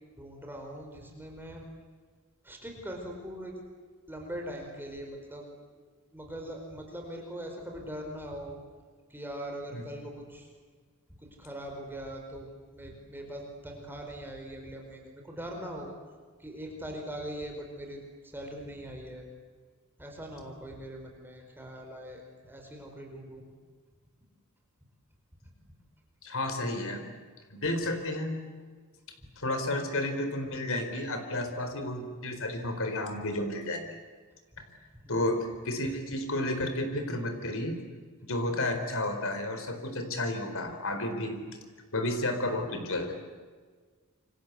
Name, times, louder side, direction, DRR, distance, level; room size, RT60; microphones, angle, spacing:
voice 1, 0.2-1.7 2.4-3.5 4.1-5.5 6.1-8.6 9.1-10.5 11.2-15.9 16.4-19.3 20.0-23.4 25.4-25.5 29.2-29.3 35.0-35.4, equal, 10° right, 1 dB, 5.0 m, -41 dB
voice 2, 26.2-27.1 27.5-28.4 29.4-34.0 35.1-37.8 38.2-41.4 41.9-43.1, left 1 dB, 65° left, 7 dB, 4.3 m, -32 dB
28.0 x 25.0 x 8.4 m, 1.5 s
head